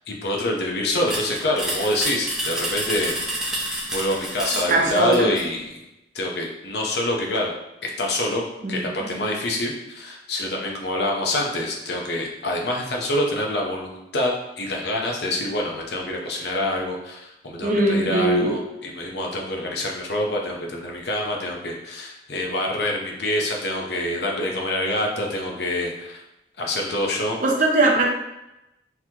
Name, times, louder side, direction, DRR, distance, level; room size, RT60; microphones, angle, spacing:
voice 1, 0.1-3.4 3.9-5.8 6.1-7.5 7.8-8.4 8.7-26.2 26.6-27.4, left 1 dB, 60° left, -1 dB, 0.7 m, -26 dB
sound 1, 1.1-5.5, right 1 dB, 5° right, 0.6 m, -29 dB
voice 2, 4.7-5.3 8.6-9.3 17.6-18.6 27.4-28.1, right 2 dB, 45° right, -2 dB, 0.7 m, -21 dB
4.0 x 3.0 x 2.8 m, 0.90 s
head